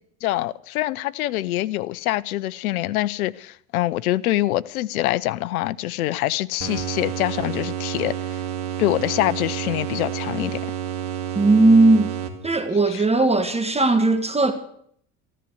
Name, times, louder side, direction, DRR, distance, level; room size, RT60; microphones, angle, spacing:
voice 1, 0.2-8.1 8.8-10.6 12.9-13.0, left 16 dB, 85° left, 0.6 m, -25 dB
sound 1, 6.6-12.7, right 10 dB, 75° right, 2.1 m, -30 dB
voice 2, 11.3-12.1 12.4-14.5, right 2 dB, 15° right, 1.6 m, -17 dB
14.5 x 11.0 x 7.9 m
hypercardioid pair, 75°, 42 cm